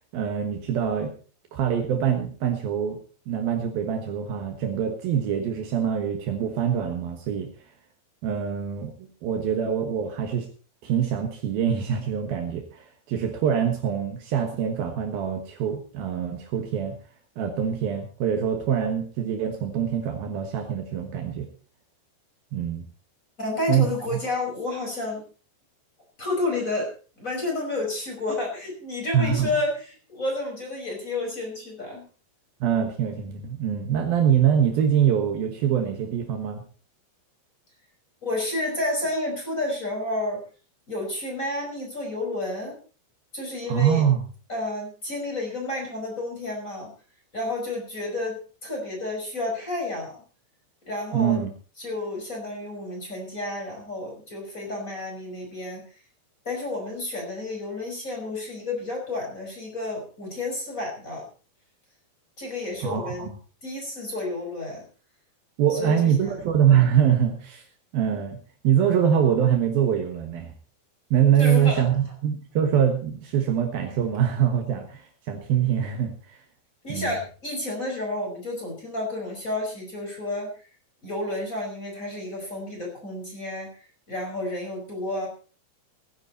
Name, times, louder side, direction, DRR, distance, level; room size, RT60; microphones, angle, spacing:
voice 1, 0.1-1.1 1.5-3.0 3.3-7.5 8.2-10.5 10.8-17.0 17.4-21.5 22.5-22.8 23.7-23.9 29.1-29.5 32.6-36.6 43.7-44.2 51.1-51.5 62.8-63.3 65.6-67.6 67.9-70.5 71.1-76.4 76.9-77.1, right 8 dB, 70° right, 5 dB, 3.0 m, -24 dB
voice 2, 23.4-25.2 26.2-26.9 27.2-32.1 38.2-40.4 40.9-42.8 43.3-44.0 44.5-46.9 47.3-50.2 50.9-51.4 51.8-55.8 56.5-61.2 62.4-63.3 63.6-64.8 65.7-66.4 71.4-71.8 76.8-80.7 81.0-83.7 84.1-85.3, left 2 dB, 20° left, 0 dB, 5.2 m, -30 dB
18.0 x 10.5 x 4.2 m, 0.38 s
omnidirectional pair, 4.8 m